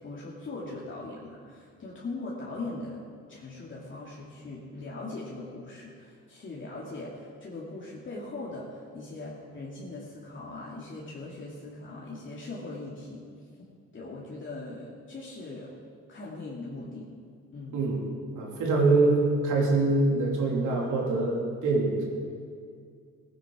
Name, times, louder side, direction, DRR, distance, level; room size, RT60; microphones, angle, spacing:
voice 1, 0.0-3.0 3.3-13.2 13.9-15.7 16.1-17.1 17.5-17.8, left 2 dB, 40° left, -5 dB, 2.3 m, -40 dB
voice 2, 18.3-22.0, right 3 dB, 80° right, -2 dB, 3.2 m, -24 dB
16.5 x 9.7 x 4.9 m, 2.3 s
cardioid pair, 90°, 30 cm